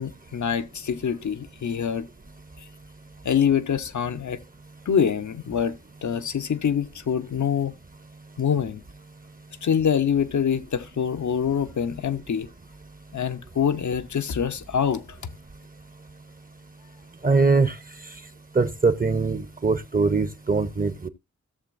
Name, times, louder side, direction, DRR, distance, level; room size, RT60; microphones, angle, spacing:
voice 1, 0.0-2.1 3.2-4.4 4.9-7.8 8.4-8.8 9.6-12.5 13.1-15.2, left 7 dB, 75° left, 0.7 m, -25 dB
voice 2, 17.2-17.8 18.5-21.1, right 4 dB, 30° right, 0.7 m, -22 dB
16.5 x 6.8 x 2.5 m
wide cardioid pair, 90°, 30 cm